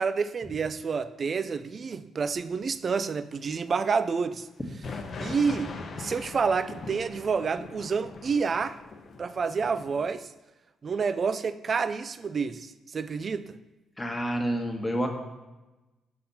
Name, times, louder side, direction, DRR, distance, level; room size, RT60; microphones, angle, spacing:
voice 1, 0.0-4.5 5.2-8.8 9.2-10.3 10.8-13.6, right 5 dB, 45° right, 0.4 m, -29 dB
sound 1, 4.8-10.1, left 4 dB, 50° left, 0.8 m, -41 dB
voice 2, 14.0-15.2, equal, 15° left, 1.2 m, -28 dB
6.6 x 4.2 x 5.6 m
cardioid pair, 90°, 0 cm